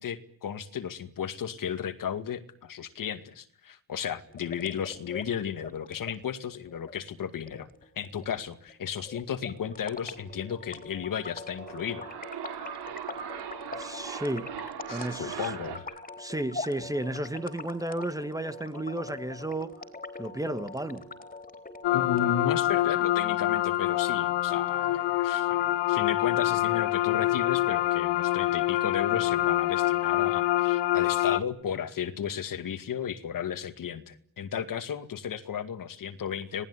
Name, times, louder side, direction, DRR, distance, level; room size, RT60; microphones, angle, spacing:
voice 1, 0.0-7.7 8.0-12.1 14.9-16.0 21.9-36.7, left 8 dB, 55° left, 11 dB, 2.2 m, -34 dB
sound 1, 4.3-22.3, left 3 dB, 20° left, 3.8 m, -43 dB
sound 2, 11.4-15.8, right 9 dB, 75° right, 4.8 m, -39 dB
voice 2, 13.8-14.4 14.9-15.5 16.2-19.7 20.2-21.0, right 1 dB, 10° right, 11 dB, 1.7 m, -33 dB
sound 3, 21.8-31.4, left 15 dB, 85° left, 1.7 m, -26 dB
27.0 x 19.0 x 9.8 m, 0.64 s
cardioid pair, 105°, 40 cm